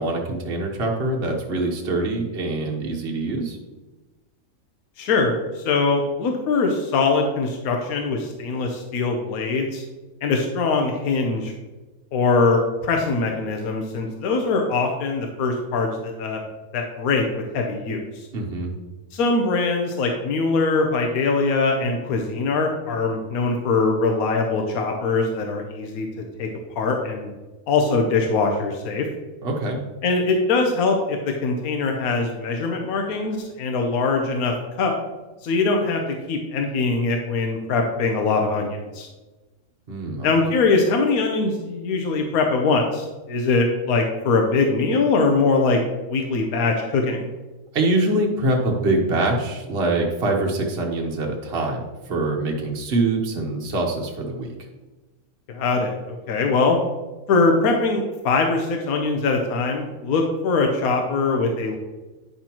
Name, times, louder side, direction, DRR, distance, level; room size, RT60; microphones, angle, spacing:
voice 1, 0.0-3.6 18.3-18.7 29.4-29.8 39.9-40.3 47.7-51.8 52.1-54.5, right 2 dB, 50° right, 0 dB, 1.1 m, -24 dB
voice 2, 5.0-9.8 10.2-11.5 12.1-16.4 16.7-18.3 19.1-26.5 26.8-27.3 27.7-29.1 30.0-34.9 35.4-36.0 36.3-39.1 40.2-45.8 46.1-47.3 55.5-55.9 56.3-56.8 57.3-61.8, left 3 dB, 85° left, 2 dB, 1.2 m, -22 dB
9.4 x 5.7 x 2.9 m, 1.2 s
omnidirectional pair, 1.5 m